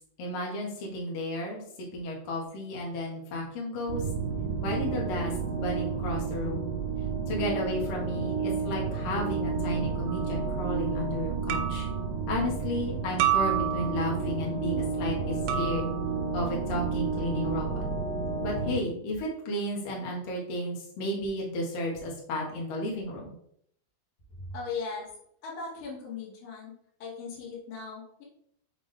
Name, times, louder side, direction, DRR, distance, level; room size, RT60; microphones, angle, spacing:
voice 1, 0.2-1.6 1.9-4.0 4.6-6.7 7.3-11.9 12.3-15.9 16.3-17.8 18.4-23.4, left 1 dB, 80° left, -2 dB, 1.4 m, -33 dB
sound 1, 3.9-18.8, right 5 dB, 30° right, 1.8 m, -31 dB
sound 2, 10.1-10.3 11.5-12.0 13.2-14.1 15.5-16.1, right 12 dB, 80° right, 3.0 m, -29 dB
voice 2, 24.5-25.1 25.4-26.7 27.0-28.2, left 5 dB, 50° left, -5 dB, 1.9 m, -38 dB
6.1 x 6.0 x 3.4 m, 0.69 s
omnidirectional pair, 5.7 m